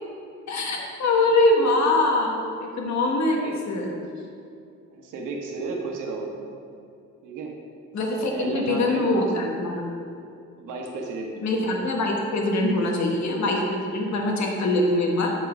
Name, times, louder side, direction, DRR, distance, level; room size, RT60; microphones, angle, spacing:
voice 1, 0.5-3.9 7.9-9.8 11.4-15.3, left 2 dB, 65° left, 0 dB, 1.4 m, -23 dB
voice 2, 4.9-6.5 7.2-7.5 8.3-9.5 10.3-11.3, right 3 dB, 90° right, 0 dB, 1.1 m, -33 dB
7.4 x 4.1 x 5.8 m, 2.5 s
cardioid pair, 90°, 30 cm